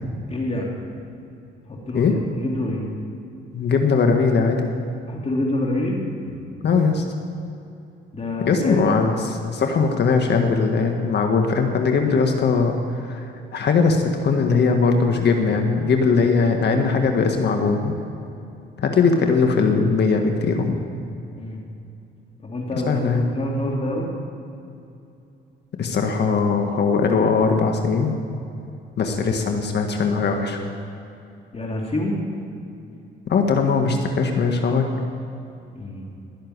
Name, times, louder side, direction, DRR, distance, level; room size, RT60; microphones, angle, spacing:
voice 1, 0.3-0.7 1.7-2.9 5.1-6.0 8.1-8.8 21.4-21.6 22.4-24.1 29.0-29.2 31.5-32.2 35.7-36.1, left 1 dB, 30° left, -1 dB, 2.8 m, -27 dB
voice 2, 3.5-4.7 6.6-7.0 8.5-17.9 18.8-20.7 22.9-23.2 25.8-28.2 29.0-30.6 33.3-34.9, left 4 dB, 60° left, 4 dB, 1.6 m, -20 dB
20.0 x 6.7 x 9.4 m, 2.7 s
cardioid pair, 90°, 20 cm